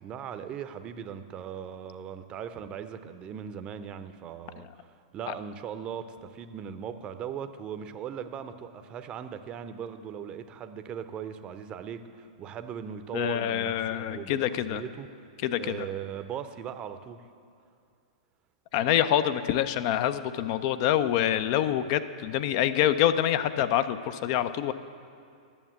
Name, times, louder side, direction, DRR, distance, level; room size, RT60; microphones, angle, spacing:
voice 1, 0.0-15.1 15.6-17.2, right 8 dB, 30° right, 10 dB, 0.6 m, -39 dB
voice 2, 13.1-14.8 15.4-15.9 18.7-24.7, left 11 dB, 45° left, 12 dB, 0.4 m, -26 dB
10.0 x 7.1 x 8.0 m, 2.4 s
figure-of-eight pair, 105°, 4 cm